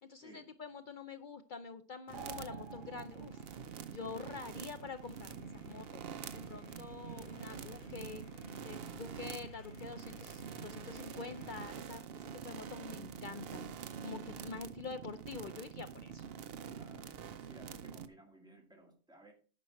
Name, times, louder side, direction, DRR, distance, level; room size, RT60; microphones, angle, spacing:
voice 1, 0.0-3.5 3.9-8.2 8.6-16.3, left 5 dB, 90° left, 10 dB, 0.4 m, -47 dB
sound 1, 2.1-3.6, right 2 dB, 35° right, 1.3 m, -50 dB
sound 2, 2.1-18.1, right 7 dB, 55° right, 0.7 m, -46 dB
sound 3, 2.6-11.7, left 1 dB, 70° left, 2.7 m, -56 dB
voice 2, 16.7-19.3, right 2 dB, 5° right, 0 dB, 2.0 m, -58 dB
9.7 x 6.1 x 4.4 m, 0.38 s
omnidirectional pair, 1.6 m